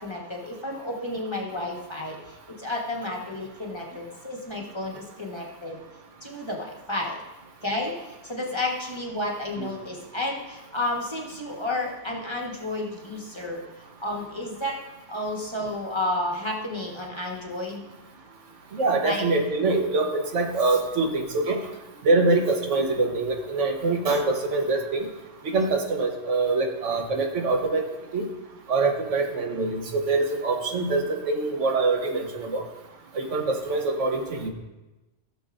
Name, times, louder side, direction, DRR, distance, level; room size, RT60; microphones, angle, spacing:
voice 1, 0.0-5.8 6.2-7.2 7.6-13.6 14.0-14.8 15.1-17.8 19.0-19.2, left 1 dB, 25° left, -2 dB, 1.4 m, -31 dB
voice 2, 18.7-21.6 22.0-25.1 25.5-27.8 28.1-28.3 28.7-32.6 33.1-34.5, right 3 dB, 85° right, 3 dB, 1.4 m, -24 dB
16.0 x 6.8 x 2.6 m, 1.1 s
omnidirectional pair, 1.2 m